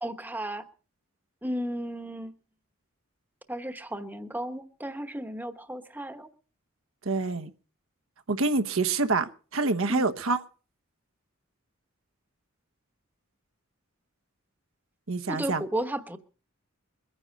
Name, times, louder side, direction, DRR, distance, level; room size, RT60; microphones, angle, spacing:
voice 1, 0.0-0.6 1.4-2.3 3.5-6.3 9.9-10.1 15.3-16.2, right 1 dB, 10° right, 8 dB, 1.1 m, -34 dB
voice 2, 7.0-7.5 8.3-10.4 15.1-15.6, right 3 dB, 75° right, 9 dB, 1.2 m, -26 dB
22.5 x 9.8 x 5.3 m, 0.38 s
head